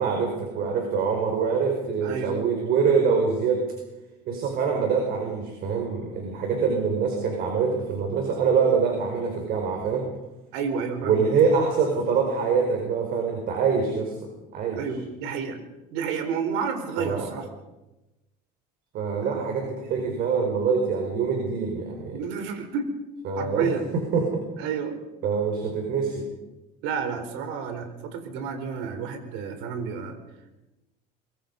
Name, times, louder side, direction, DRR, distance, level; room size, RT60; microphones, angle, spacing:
voice 1, 0.0-3.6 4.2-10.0 11.0-14.1 14.5-14.8 17.0-17.3 18.9-22.2 23.2-24.4 25.2-26.2, right 5 dB, 50° right, 2 dB, 5.1 m, -24 dB
voice 2, 2.0-2.4 10.5-11.3 14.8-15.6 15.9-17.5 19.2-19.4 22.1-22.9 23.4-23.8 24.6-25.0 26.8-30.2, right 6 dB, 75° right, 7 dB, 4.4 m, -30 dB
24.0 x 22.5 x 5.4 m, 1.0 s
cardioid pair, 145°, 19 cm